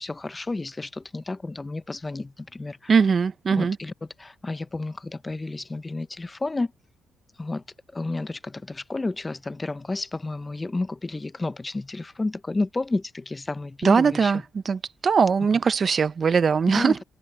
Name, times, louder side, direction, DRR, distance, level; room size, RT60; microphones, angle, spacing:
voice 1, 0.0-2.9 3.6-3.9 4.2-6.7 7.4-7.6 7.9-14.3 16.7-17.0, left 2 dB, 20° left, 0.8 m, -31 dB
voice 2, 2.9-3.8 13.8-17.0, right 5 dB, 45° right, 0.6 m, -21 dB
cardioid pair, 90°, 0 cm